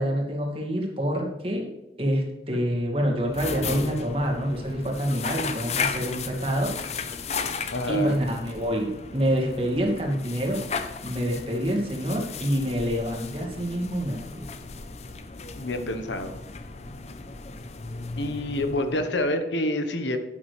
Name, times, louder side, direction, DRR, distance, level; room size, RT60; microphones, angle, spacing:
voice 1, 0.0-1.7 2.0-6.7 7.9-10.6 11.0-14.4, equal, 30° right, 0 dB, 2.1 m, -27 dB
sound 1, 3.2-19.3, left 5 dB, 35° left, 0.7 m, -35 dB
voice 2, 7.7-8.2 15.6-16.3 18.2-20.2, left 1 dB, 85° left, 7 dB, 1.1 m, -27 dB
11.0 x 9.0 x 3.3 m, 1.0 s
head